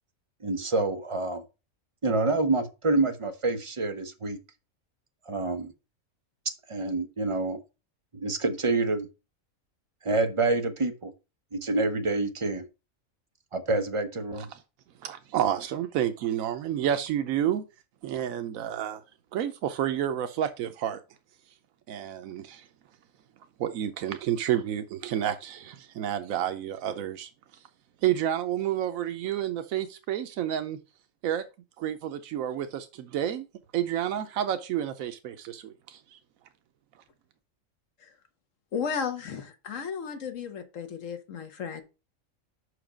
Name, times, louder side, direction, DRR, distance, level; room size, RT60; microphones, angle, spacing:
voice 1, 0.4-1.4 2.0-4.4 5.3-5.7 6.7-7.6 8.1-9.1 10.0-11.1 11.5-12.6 13.5-14.5, right 2 dB, 30° right, 0.8 m, -27 dB
voice 2, 15.0-17.6 18.0-19.0 19.3-21.0 21.9-22.6 23.6-27.3 28.0-30.8 31.2-31.4 31.8-33.5 33.7-36.2, right 10 dB, 90° right, 1.1 m, -30 dB
voice 3, 38.7-41.8, left 6 dB, 70° left, 1.5 m, -34 dB
5.8 x 4.8 x 5.0 m
omnidirectional pair, 1.4 m